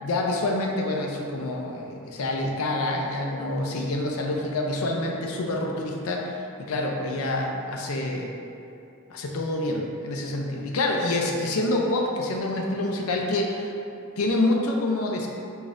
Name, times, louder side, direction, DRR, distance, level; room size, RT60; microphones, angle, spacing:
voice 1, 0.0-8.3 9.1-13.7 14.2-15.3, left 2 dB, 85° left, 0 dB, 0.5 m, -27 dB
5.0 x 2.6 x 2.5 m, 2.6 s
head